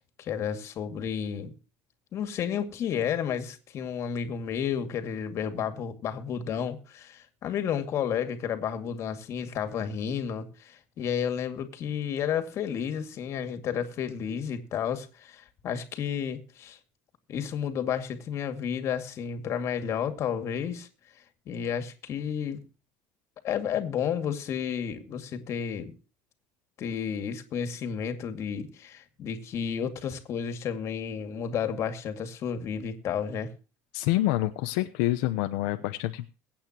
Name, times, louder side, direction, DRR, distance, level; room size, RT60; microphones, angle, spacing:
voice 1, 0.2-1.5 2.1-16.8 17.3-20.9 21.5-22.6 23.4-26.0 26.8-33.5, left 8 dB, 45° left, 2.3 m, -32 dB
voice 2, 33.9-36.3, left 16 dB, 85° left, 0.9 m, -27 dB
22.5 x 8.8 x 3.0 m
cardioid pair, 135°, 7 cm